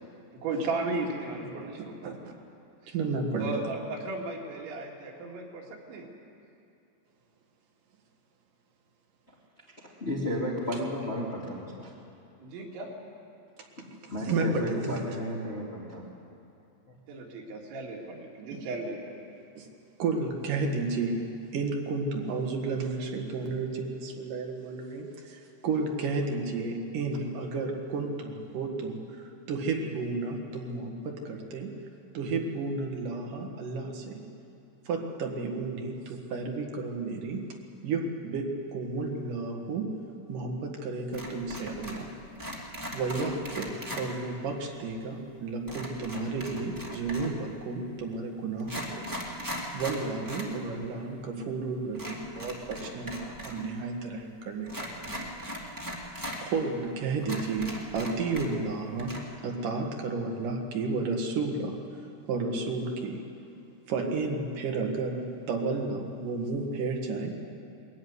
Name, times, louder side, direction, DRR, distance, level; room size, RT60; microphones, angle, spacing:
voice 1, 0.4-2.2 2.8-3.0 3.4-6.1 12.4-12.9 17.1-19.0, right 2 dB, 85° right, -1 dB, 4.6 m, -35 dB
voice 2, 2.9-3.6 14.2-15.0 19.6-19.7 20.0-21.2 21.5-31.7 32.1-34.3 34.9-37.4 37.8-39.9 40.3-42.1 42.9-49.1 49.7-55.2 56.4-59.2 59.4-61.8 62.3-63.2 63.9-67.3, right 3 dB, 55° right, 1 dB, 2.8 m, -32 dB
voice 3, 10.0-11.9 14.1-16.0 16.9-17.0, equal, 20° left, -4 dB, 1.7 m, -33 dB
sound 1, 41.1-42.1 42.3-44.1 45.7-47.4 48.1-48.2 48.6-50.5 50.8-50.9 51.9-53.6 53.9-54.0 54.6-56.4 56.8-56.9 57.2-58.7 59.0-59.2, equal, 20° right, 0.5 m, -38 dB
21.5 x 14.0 x 9.5 m, 2.6 s
omnidirectional pair, 5.2 m